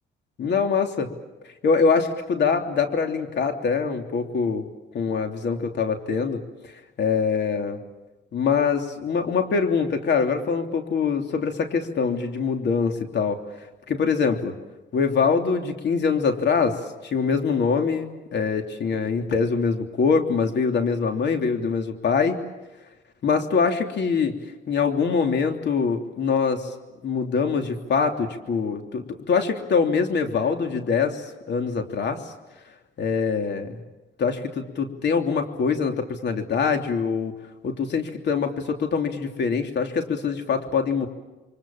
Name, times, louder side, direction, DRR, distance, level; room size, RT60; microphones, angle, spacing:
voice 1, 0.4-1.1 1.4-4.7 4.9-6.4 6.7-7.8 8.3-14.5 14.9-22.4 23.2-24.3 24.7-26.7 27.0-32.2 33.0-33.8 34.2-37.3 37.6-41.1, left 5 dB, 60° left, 5 dB, 3.2 m, -24 dB
29.5 x 24.0 x 7.4 m, 1.1 s
cardioid pair, 90°, 20 cm